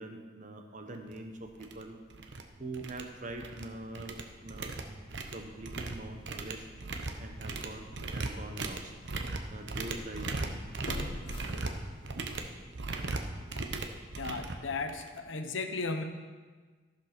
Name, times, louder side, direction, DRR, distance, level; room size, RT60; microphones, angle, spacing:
voice 1, 0.0-2.0 2.6-4.7 5.3-8.9 9.5-11.8, right 2 dB, 40° right, 4 dB, 1.0 m, -44 dB
sound 1, 1.1-1.2 1.6-1.8 2.1-2.4 2.7-3.7 3.9-15.2, right 3 dB, 65° right, 0.8 m, -38 dB
sound 2, 1.2-13.9, equal, 5° right, 2.0 m, -59 dB
sound 3, 7.6-7.7 8.3-8.4 10.8-12.3 12.7-12.8, left 1 dB, 55° left, 1.9 m, -40 dB
voice 2, 14.2-16.0, left 3 dB, 80° left, 7 dB, 0.9 m, -35 dB
14.5 x 5.3 x 6.0 m, 1.4 s
head